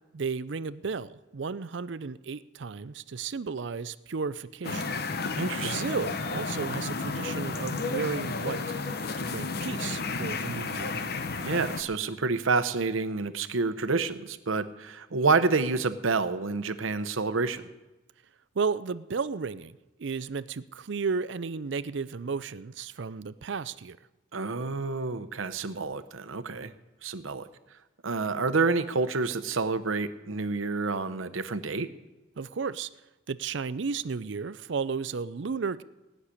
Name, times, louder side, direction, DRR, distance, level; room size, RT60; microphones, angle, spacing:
voice 1, 0.1-4.9 5.6-8.6 9.2-11.0 18.6-24.0 32.4-32.9 33.3-35.8, right 5 dB, 65° right, 16 dB, 0.5 m, -33 dB
sound 1, 4.6-11.8, left 3 dB, 50° left, 0.8 m, -32 dB
voice 2, 5.4-5.8 11.4-17.7 24.3-26.7 27.0-27.5 28.0-31.9, right 4 dB, 90° right, 12 dB, 0.9 m, -28 dB
17.5 x 6.6 x 9.8 m, 1.0 s
head